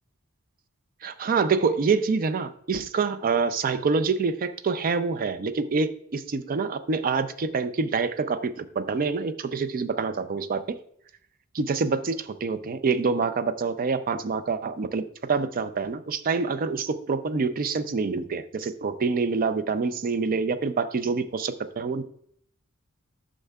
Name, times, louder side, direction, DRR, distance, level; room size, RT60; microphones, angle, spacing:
voice 1, 1.0-10.6 11.5-22.0, right 4 dB, 40° right, 12 dB, 0.4 m, -26 dB
10.0 x 6.4 x 2.3 m, 0.67 s
head